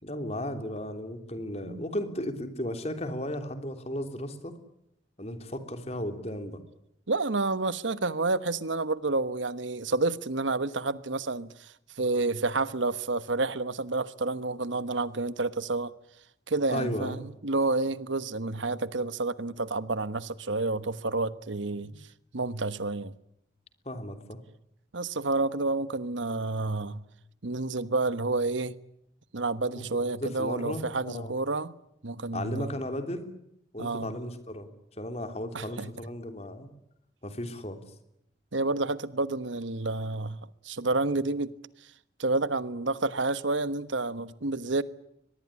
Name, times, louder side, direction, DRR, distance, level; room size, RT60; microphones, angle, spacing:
voice 1, 0.0-4.6 5.2-6.6 16.7-17.2 21.8-21.9 23.8-24.4 29.8-31.3 32.3-33.3 33.7-34.7 35.0-36.7 37.2-37.8, left 1 dB, 35° left, 3.2 m, -35 dB
voice 2, 7.1-15.9 16.5-21.9 22.3-23.1 24.9-27.0 27.4-28.7 29.3-31.7 32.0-32.8 33.8-34.1 35.5-35.9 38.5-40.4 40.6-41.5 42.2-44.8, right 3 dB, 90° right, 1.2 m, -29 dB
23.5 x 21.0 x 9.9 m
head